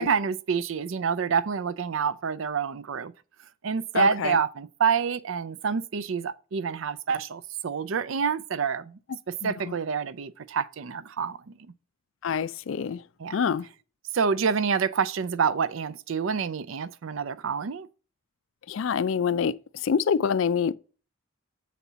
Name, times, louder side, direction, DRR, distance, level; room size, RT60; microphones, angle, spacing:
voice 1, 0.0-3.1 3.6-9.0 9.3-11.5 13.2-13.5 14.1-17.9, right 6 dB, 65° right, 0.5 m, -27 dB
voice 2, 3.9-4.4 9.4-9.7 12.2-13.0 13.3-13.7 18.7-20.8, left 6 dB, 65° left, 0.4 m, -26 dB
7.2 x 4.2 x 6.7 m
head